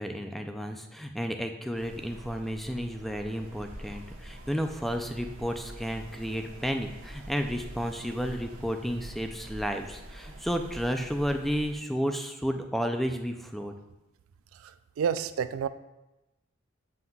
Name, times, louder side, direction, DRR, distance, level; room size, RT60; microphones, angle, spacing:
voice 1, 0.0-13.7, equal, ahead, 5 dB, 0.4 m, -32 dB
sound 1, 1.7-11.8, right 1 dB, 70° right, 1.0 m, -45 dB
voice 2, 14.5-15.7, right 7 dB, 85° right, 13 dB, 0.3 m, -30 dB
7.7 x 5.6 x 2.3 m, 0.98 s
head